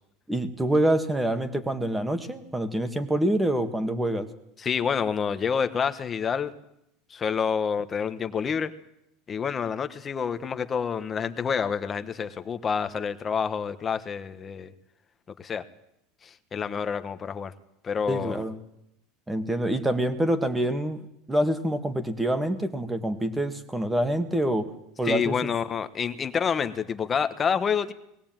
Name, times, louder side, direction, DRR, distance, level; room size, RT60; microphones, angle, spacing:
voice 1, 0.3-4.3 18.1-18.6 19.3-21.0 21.3-24.7 25.0-25.5, right 1 dB, 5° right, 9 dB, 1.8 m, -26 dB
voice 2, 4.6-6.5 7.1-8.7 9.3-14.7 15.4-15.7 16.2-17.5 17.8-18.4 25.0-27.9, left 6 dB, 25° left, 11 dB, 1.3 m, -28 dB
20.0 x 17.5 x 9.1 m, 0.81 s
supercardioid pair, 140°, 0 cm